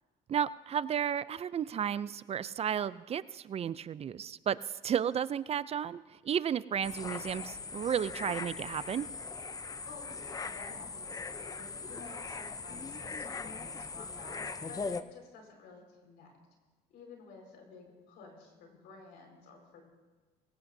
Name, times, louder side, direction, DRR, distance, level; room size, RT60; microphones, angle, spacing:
voice 1, 0.3-9.1, right 8 dB, 35° right, 17 dB, 0.4 m, -33 dB
sound 1, 6.8-15.0, left 4 dB, 20° left, 0.6 m, -40 dB
voice 2, 9.8-16.3 16.9-19.8, left 4 dB, 90° left, 2 dB, 4.8 m, -52 dB
22.5 x 18.0 x 2.7 m, 1.4 s
cardioid pair, 110°, 17 cm